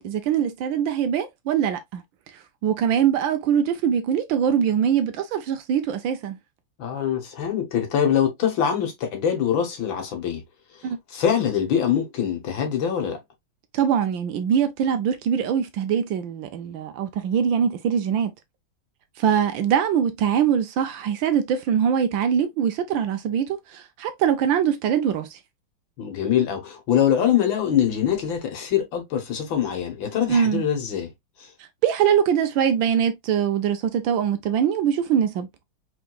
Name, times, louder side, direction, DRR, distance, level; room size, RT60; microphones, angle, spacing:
voice 1, 0.0-2.0 2.6-6.4 10.8-11.0 13.7-18.3 19.2-25.4 30.3-30.6 31.8-35.5, right 8 dB, 75° right, 1.3 m, -22 dB
voice 2, 6.8-10.4 11.1-13.2 26.0-31.1 31.4-31.5, left 9 dB, 65° left, 1.9 m, -23 dB
4.8 x 3.5 x 2.2 m
omnidirectional pair, 2.3 m